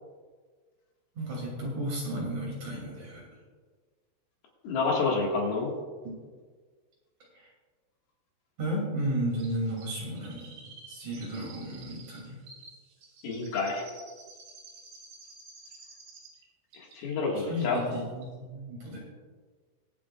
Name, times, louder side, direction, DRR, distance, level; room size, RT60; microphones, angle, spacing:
voice 1, 1.2-3.3 7.3-7.5 8.6-10.5 10.9-12.4 17.3-19.0, equal, 45° right, -3 dB, 3.8 m, -33 dB
voice 2, 4.6-5.7 13.2-13.9 16.7-17.8, left 4 dB, 65° left, -2 dB, 3.4 m, -28 dB
Chirp tweet, 9.4-16.4 16.7-17.7 17.9-18.0, right 4 dB, 65° right, 4.2 m, -51 dB
22.5 x 8.8 x 2.4 m, 1.5 s
omnidirectional pair, 4.9 m